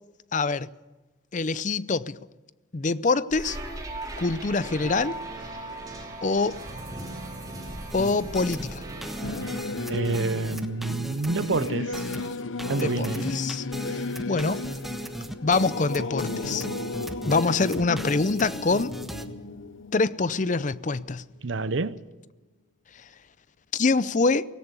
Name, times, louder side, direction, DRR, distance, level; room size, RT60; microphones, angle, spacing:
voice 1, 0.3-0.7 1.3-2.1 2.7-3.6 4.2-5.2 6.2-6.6 7.9-8.8 12.8-14.6 15.4-16.7 17.3-18.9 19.9-21.2 23.7-24.5, left 3 dB, 40° left, 0.6 m, -25 dB
sound 1, 3.3-9.6, right 2 dB, 20° right, 4.2 m, -38 dB
sound 2, 7.9-19.3, equal, ahead, 1.2 m, -37 dB
Singing / Musical instrument, 9.2-21.1, left 3 dB, 85° left, 0.8 m, -34 dB
voice 2, 9.9-12.1 12.7-13.3 21.4-22.0, right 3 dB, 75° right, 0.7 m, -28 dB
18.0 x 18.0 x 8.3 m
head